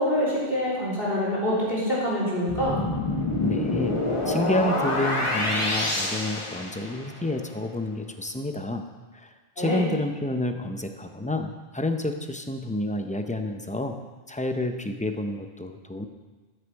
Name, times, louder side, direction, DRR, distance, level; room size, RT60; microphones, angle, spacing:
voice 1, 0.0-2.8 9.6-9.8, equal, 60° left, -8 dB, 3.4 m, -25 dB
sound 1, 2.5-7.2, left 2 dB, 30° left, 1.4 m, -27 dB
voice 2, 3.4-4.0 4.3-8.9 9.1-14.0 14.3-16.1, left 2 dB, 10° left, 6 dB, 0.4 m, -29 dB
13.5 x 6.7 x 4.7 m, 1.3 s
omnidirectional pair, 1.0 m